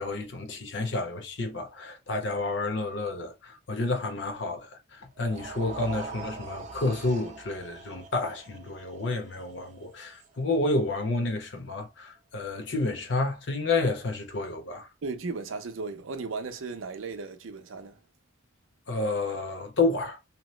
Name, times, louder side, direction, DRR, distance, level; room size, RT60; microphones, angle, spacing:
voice 1, 0.0-14.9 18.9-20.2, left 2 dB, 65° left, 0.8 m, -30 dB
sound 1, 5.2-11.4, right 4 dB, 40° right, 0.5 m, -44 dB
voice 2, 15.0-18.0, right 4 dB, 90° right, 0.6 m, -36 dB
2.9 x 2.1 x 3.1 m
head